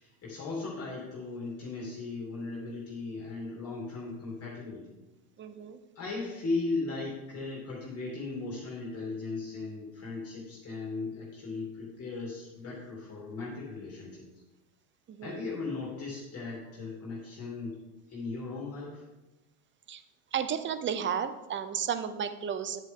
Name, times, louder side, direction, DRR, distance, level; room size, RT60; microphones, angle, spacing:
voice 1, 0.0-4.8 5.9-14.3 15.2-17.8 18.1-19.0, left 3 dB, 35° left, -5 dB, 3.1 m, -37 dB
voice 2, 5.4-5.8 15.1-15.4 19.9-20.0 20.3-22.8, right 8 dB, 25° right, 11 dB, 0.7 m, -33 dB
9.9 x 8.2 x 3.7 m, 1.1 s
supercardioid pair, 105°, 43 cm